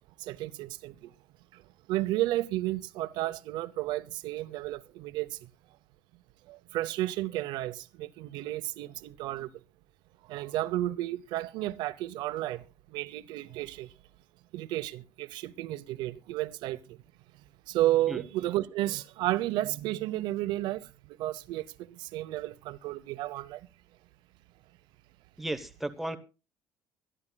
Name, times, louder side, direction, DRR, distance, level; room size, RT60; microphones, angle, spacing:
voice 1, 0.2-1.1 1.5-1.6 1.9-5.5 6.5-9.5 10.3-13.9 14.5-17.0 17.7-23.7, right 15 dB, 90° right, 0.7 m, -32 dB
voice 2, 25.4-26.2, right 1 dB, 5° right, 0.9 m, -34 dB
24.5 x 11.0 x 2.2 m
cardioid pair, 170°, 8 cm